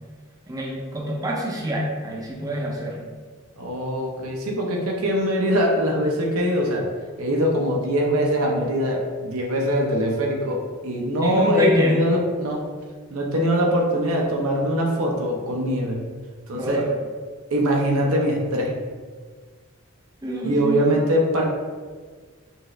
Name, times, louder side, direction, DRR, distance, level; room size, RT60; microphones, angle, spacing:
voice 1, 0.5-3.1 11.2-12.0 16.5-16.9 20.2-20.8, equal, 15° right, -2 dB, 0.5 m, -26 dB
voice 2, 3.6-6.9 7.2-12.6 13.1-16.0 16.5-16.8 17.5-18.7 20.4-21.4, equal, 80° right, 0 dB, 0.7 m, -22 dB
5.4 x 2.4 x 3.1 m, 1.5 s
head